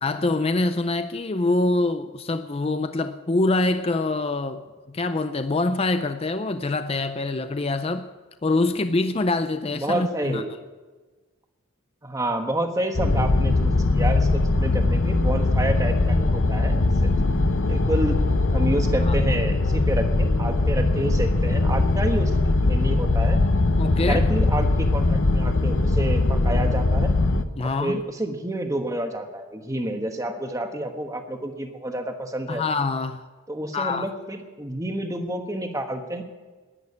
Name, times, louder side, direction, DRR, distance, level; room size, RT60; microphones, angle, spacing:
voice 1, 0.0-4.6 4.9-8.1 8.4-10.4 19.0-19.1 23.8-24.2 27.6-28.0 32.5-33.2 33.7-34.1, left 2 dB, 25° left, 10 dB, 0.4 m, -25 dB
voice 2, 9.7-10.5 12.0-17.3 17.7-18.2 18.5-23.4 24.0-27.1 27.8-32.6 33.5-36.2, right 1 dB, 15° right, 5 dB, 1.2 m, -29 dB
sound 1, 12.9-27.4, left 2 dB, 60° left, 0.8 m, -21 dB
11.0 x 10.5 x 9.6 m, 1.3 s
head